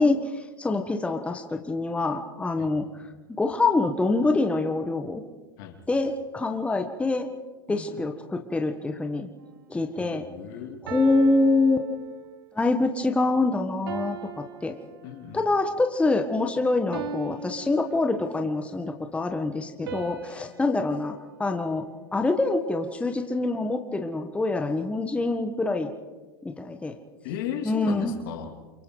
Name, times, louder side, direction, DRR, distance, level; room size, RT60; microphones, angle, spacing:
voice 1, 0.0-2.9 3.4-5.2 5.9-7.3 7.7-9.3 9.7-10.2 10.8-11.9 12.5-14.7 15.3-21.1 21.4-21.8 22.1-25.9 26.4-26.9 27.6-28.2, left 3 dB, 10° left, 5 dB, 1.4 m, -25 dB
voice 2, 7.7-8.0 10.0-10.8 15.0-15.4 27.2-28.5, left 8 dB, 60° left, 4 dB, 2.9 m, -36 dB
sound 1, 9.4-9.7 10.9-12.5 13.9-15.5 16.9-18.6 19.9-22.3, right 6 dB, 70° right, 2.0 m, -40 dB
29.0 x 23.0 x 4.0 m, 1.3 s
hypercardioid pair, 100°, 13 cm